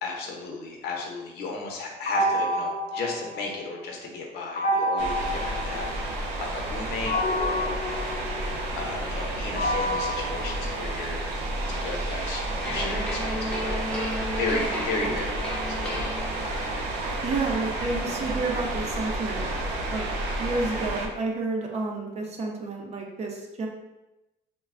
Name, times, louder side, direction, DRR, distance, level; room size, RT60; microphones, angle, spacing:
voice 1, 0.0-8.1 8.7-11.2 11.8-13.8 14.3-17.0 17.9-18.0, left 3 dB, 75° left, 0 dB, 0.6 m, -35 dB
sound 1, 2.1-3.9 4.6-6.4 7.1-11.3, equal, 45° left, 0.7 m, -29 dB
sound 2, 5.0-21.1, right 2 dB, 90° right, 0.5 m, -31 dB
sound 3, 12.6-16.7, left 1 dB, 5° left, 0.5 m, -33 dB
voice 2, 17.2-19.4 19.9-20.1 20.4-23.7, right 3 dB, 40° right, 0 dB, 0.6 m, -30 dB
3.2 x 2.1 x 2.4 m, 0.97 s
cardioid pair, 110°, 17 cm